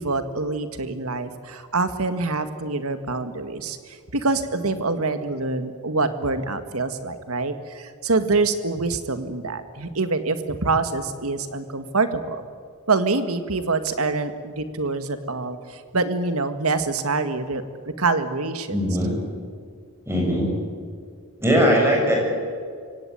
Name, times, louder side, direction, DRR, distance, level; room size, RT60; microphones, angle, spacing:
voice 1, 0.0-12.4 12.9-17.6 18.0-18.9, right 3 dB, 75° right, 10 dB, 1.9 m, -25 dB
voice 2, 18.7-19.1 20.1-20.5 21.4-22.1, equal, 10° right, -1 dB, 7.0 m, -20 dB
23.5 x 17.5 x 9.3 m, 2.2 s
head